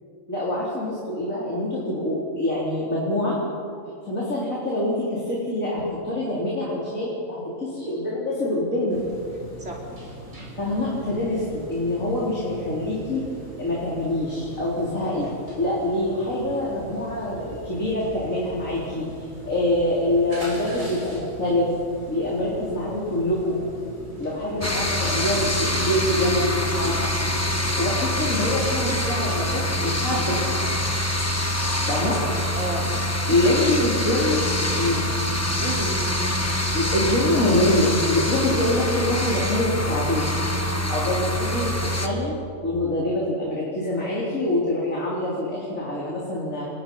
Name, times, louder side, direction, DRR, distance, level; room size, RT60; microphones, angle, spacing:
voice 1, 0.3-3.4 4.0-9.0 10.6-13.2 13.6-15.3 15.6-21.7 22.1-23.6 24.2-27.1 27.8-30.6 31.9-32.2 33.3-34.4 34.7-35.1 36.7-40.4 40.7-42.3 42.6-46.6, left 1 dB, 80° left, -6 dB, 4.4 m, -25 dB
sound 1, 8.9-28.7, right 1 dB, 80° right, 8.0 m, -41 dB
sound 2, 24.6-42.1, left 1 dB, 10° left, 1.4 m, -25 dB
voice 2, 32.3-32.9 33.2-33.7 34.3-34.5 35.6-36.6, right 1 dB, 60° right, -2 dB, 4.5 m, -33 dB
29.5 x 21.0 x 5.6 m, 2.5 s
omnidirectional pair, 1.4 m